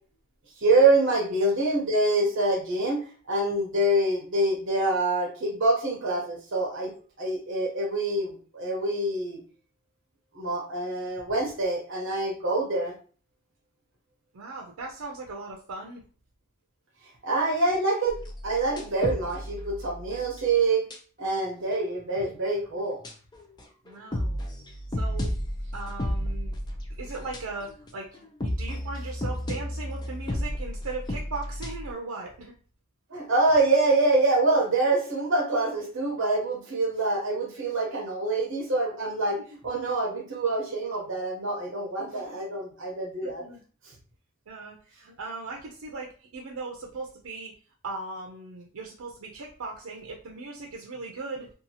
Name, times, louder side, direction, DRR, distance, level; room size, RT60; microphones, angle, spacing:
voice 1, 0.6-6.9 7.2-9.4 10.3-12.9 17.2-18.2 18.4-20.8 21.2-23.0 33.1-39.4 39.6-43.4, right 2 dB, 60° right, -2 dB, 0.8 m, -25 dB
voice 2, 14.3-16.0 23.9-24.4 24.9-25.3 25.7-26.6 27.0-32.5 42.1-42.3 43.2-43.6 44.5-47.5 47.8-51.5, right 3 dB, 85° right, 0 dB, 0.5 m, -38 dB
sound 1, 18.1-20.5 20.9-21.0 21.4-21.5 21.7-22.0 23.0-27.9 28.1-31.9, equal, 20° left, 0.3 m, -33 dB
2.7 x 2.3 x 2.7 m, 0.40 s
head